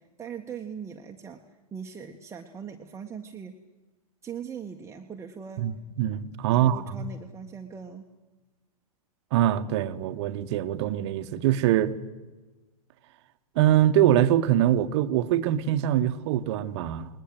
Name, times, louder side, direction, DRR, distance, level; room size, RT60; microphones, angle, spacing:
voice 1, 0.0-3.6 4.2-5.6 6.5-8.0, right 7 dB, 15° right, 1.6 m, -40 dB
voice 2, 5.6-6.8 9.3-11.9 13.5-17.1, right 11 dB, 45° right, 1.5 m, -23 dB
29.0 x 21.0 x 8.1 m
figure-of-eight pair, 100°, 20 cm